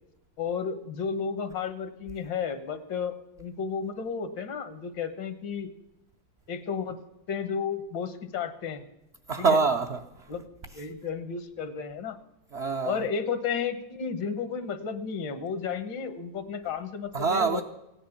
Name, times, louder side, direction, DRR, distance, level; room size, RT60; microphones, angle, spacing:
voice 1, 0.4-5.7 6.5-7.0 7.3-8.8 9.4-9.6 10.3-10.4 10.7-12.2 12.8-17.6, left 6 dB, 80° left, 1.9 m, -32 dB
voice 2, 9.3-10.3 12.5-13.0 17.1-17.6, right 4 dB, 55° right, 0.7 m, -25 dB
16.5 x 9.6 x 7.1 m
omnidirectional pair, 2.0 m